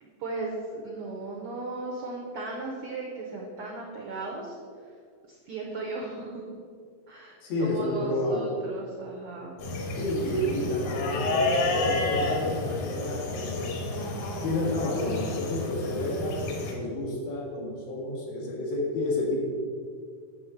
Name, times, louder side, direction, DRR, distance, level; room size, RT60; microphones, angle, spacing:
voice 1, 0.0-4.5 5.3-6.4 7.1-9.6 15.8-16.0, right 3 dB, 85° right, -1 dB, 1.3 m, -37 dB
voice 2, 7.4-8.5 10.0-13.8 14.4-19.5, left 1 dB, 85° left, -3 dB, 3.6 m, -30 dB
sound 1, 9.6-16.7, left 2 dB, 65° left, 2.4 m, -30 dB
9.6 x 3.7 x 7.1 m, 2.2 s
omnidirectional pair, 4.0 m